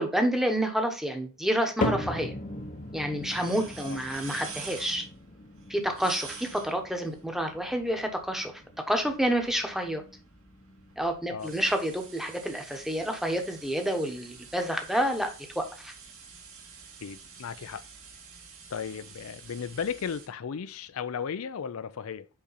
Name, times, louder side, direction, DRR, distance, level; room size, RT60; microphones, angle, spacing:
voice 1, 0.0-2.3 2.9-5.1 5.7-8.6 8.9-10.0 11.0-15.9, right 1 dB, ahead, 1.0 m, -29 dB
sound 1, 1.8-18.1 18.5-19.0 19.6-19.7 20.5-20.6, left 1 dB, 35° left, 0.7 m, -40 dB
sound 2, 2.2-20.3, right 5 dB, 75° right, 2.1 m, -48 dB
voice 2, 17.0-17.8 18.7-22.3, left 7 dB, 75° left, 0.5 m, -35 dB
5.6 x 5.0 x 4.1 m
head